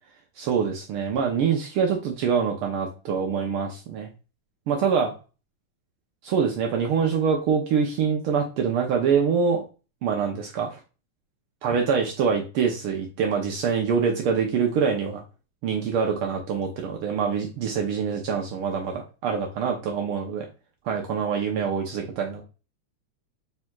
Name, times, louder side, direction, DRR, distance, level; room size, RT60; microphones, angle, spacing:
voice 1, 0.4-4.1 4.7-5.1 6.2-9.6 10.0-10.8 11.6-15.2 15.6-20.5 20.8-22.4, right 6 dB, 90° right, 2 dB, 1.1 m, -25 dB
4.9 x 4.4 x 2.3 m, 0.32 s
omnidirectional pair, 3.4 m